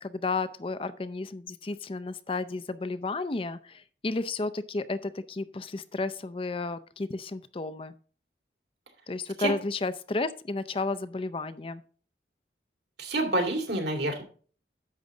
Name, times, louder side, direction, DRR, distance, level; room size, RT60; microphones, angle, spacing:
voice 1, 0.0-7.9 9.1-11.8, left 3 dB, 30° left, 14 dB, 0.5 m, -32 dB
voice 2, 13.0-14.2, right 2 dB, 75° right, 3 dB, 2.7 m, -28 dB
10.5 x 7.3 x 3.8 m, 0.42 s
head